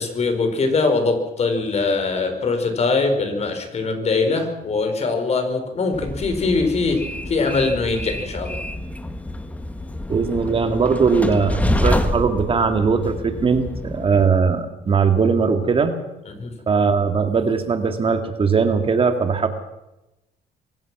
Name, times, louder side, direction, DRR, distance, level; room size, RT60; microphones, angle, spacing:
voice 1, 0.0-8.6 16.3-16.5, left 3 dB, 40° left, 6 dB, 4.6 m, -22 dB
Train, 5.9-14.3, left 1 dB, 10° left, 1.7 m, -27 dB
voice 2, 10.1-16.0 16.7-19.5, right 5 dB, 35° right, 7 dB, 2.1 m, -19 dB
24.5 x 17.5 x 6.1 m, 0.94 s
cardioid pair, 110°, 17 cm